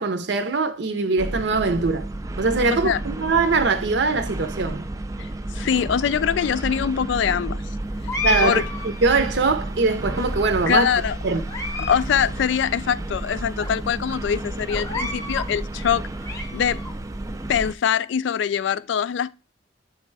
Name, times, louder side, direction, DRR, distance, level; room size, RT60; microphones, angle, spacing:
voice 1, 0.0-2.1 2.4-4.9 8.2-10.9 11.2-11.4, right 3 dB, 60° right, 0.6 m, -22 dB
sound 1, 1.2-17.7, right 1 dB, 15° right, 0.3 m, -31 dB
voice 2, 5.5-7.6 8.4-8.6 10.7-11.2 11.8-16.1 16.5-16.8 17.5-19.3, left 8 dB, 70° left, 0.3 m, -23 dB
sound 2, 8.1-9.5 10.2-10.8 11.3-12.0 12.3-12.4 13.1-13.2 13.6-13.7 14.7-15.5 16.0-16.9, left 3 dB, 15° left, 0.7 m, -31 dB
7.6 x 3.2 x 4.6 m
head